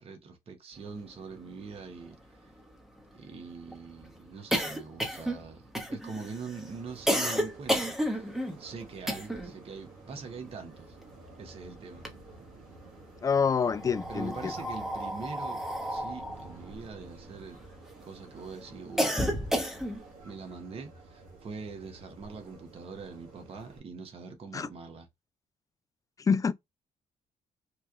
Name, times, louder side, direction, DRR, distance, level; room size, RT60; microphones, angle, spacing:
voice 1, 0.0-2.5 3.1-8.3 8.6-11.0 11.4-12.1 14.1-17.6 18.0-19.2 20.2-25.1, right 4 dB, 45° right, 0.9 m, -43 dB
sound 1, 1.4-1.5 1.7-1.8 2.1-9.6 9.9-11.5 11.8-12.7 13.5-18.0 18.4-20.1, equal, 5° right, 0.9 m, -32 dB
sound 2, 6.7-23.8, right 3 dB, 80° right, 1.2 m, -51 dB
voice 2, 13.2-14.5 24.5-24.7 26.2-26.5, left 6 dB, 25° left, 0.3 m, -27 dB
3.0 x 2.3 x 3.5 m
supercardioid pair, 80°, 14 cm